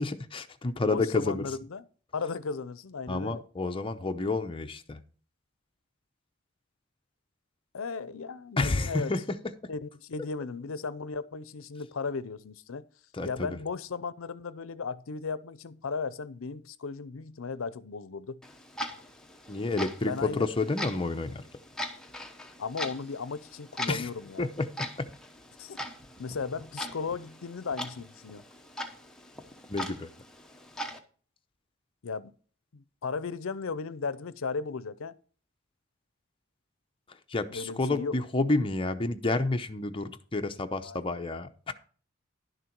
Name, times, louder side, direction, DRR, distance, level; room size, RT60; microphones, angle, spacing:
voice 1, 0.0-1.4 3.1-5.0 8.6-9.4 13.1-13.6 19.5-21.4 23.9-24.1 24.4-24.7 25.0-25.1 29.7-30.1 37.3-41.7, left 3 dB, 25° left, 0.7 m, -30 dB
voice 2, 0.9-1.9 2.1-3.4 7.7-9.1 9.7-12.8 13.3-18.4 20.0-20.5 22.6-24.5 25.6-25.8 26.2-28.4 32.0-32.3 32.7-35.2 37.5-38.1 40.8-41.1, left 4 dB, 70° left, 0.6 m, -36 dB
Clock, 18.4-31.0, left 1 dB, 5° left, 0.9 m, -41 dB
11.0 x 6.7 x 4.5 m
head